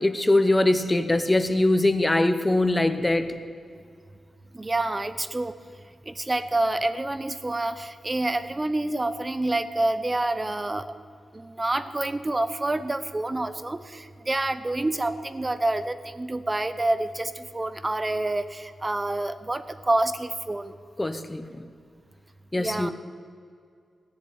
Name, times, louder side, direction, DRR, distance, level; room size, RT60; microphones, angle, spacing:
voice 1, 0.0-3.4 21.0-21.7 22.5-22.9, left 2 dB, 15° left, 10 dB, 0.9 m, -22 dB
voice 2, 4.5-5.5 6.1-10.9 11.3-20.7 22.5-22.9, right 2 dB, 20° right, 12 dB, 0.7 m, -27 dB
17.5 x 7.4 x 9.3 m, 2.3 s
wide cardioid pair, 110°, 0 cm